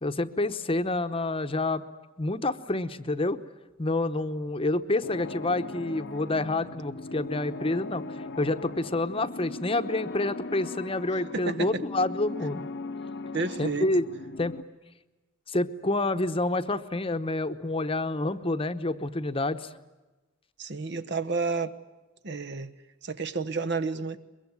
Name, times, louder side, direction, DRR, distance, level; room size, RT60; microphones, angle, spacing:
voice 1, 0.0-1.8 2.2-3.4 3.8-12.7 13.6-14.0 14.4-14.6 15.5-19.7, left 2 dB, 25° left, 0.9 m, -28 dB
sound 1, 5.0-14.6, left 3 dB, 60° left, 0.8 m, -39 dB
voice 2, 11.3-11.8 13.3-13.9 20.6-21.7 22.2-22.7 23.0-24.2, right 4 dB, 55° right, 1.1 m, -30 dB
23.5 x 22.5 x 9.5 m
head